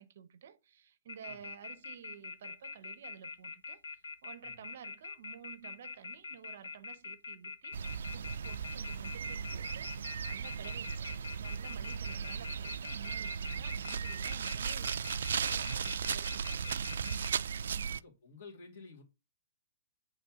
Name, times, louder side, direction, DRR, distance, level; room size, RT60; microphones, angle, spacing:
voice 1, 0.0-3.8 4.2-9.9 10.3-17.3 17.7-17.9, right 9 dB, 50° right, 0.7 m, -52 dB
sound 1, 1.1-17.3, left 4 dB, 90° left, 0.8 m, -44 dB
sound 2, 7.7-18.0, right 7 dB, 70° right, 0.3 m, -37 dB
voice 2, 17.9-19.0, left 4 dB, 40° left, 2.3 m, -53 dB
8.1 x 3.4 x 6.1 m
hypercardioid pair, 180°, 0 cm